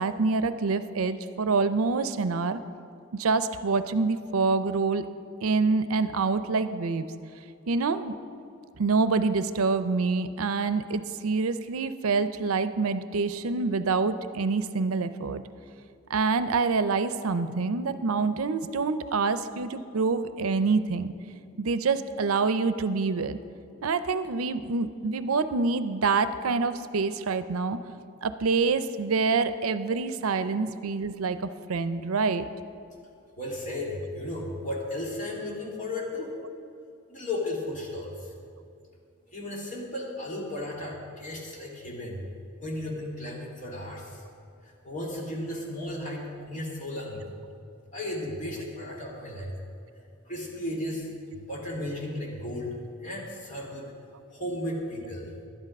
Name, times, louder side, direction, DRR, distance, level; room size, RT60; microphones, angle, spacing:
voice 1, 0.0-2.6 3.1-5.1 5.4-7.1 7.7-8.1 8.8-15.4 16.1-21.1 21.6-23.4 23.8-27.8 28.2-32.5, right 4 dB, 90° right, 12 dB, 0.5 m, -26 dB
voice 2, 33.4-36.3 37.1-38.3 39.3-42.2 42.6-44.2 44.6-47.2 47.9-49.6 50.2-53.9 54.3-55.3, left 1 dB, 35° left, -3 dB, 2.4 m, -35 dB
12.0 x 10.0 x 5.3 m, 2.5 s
head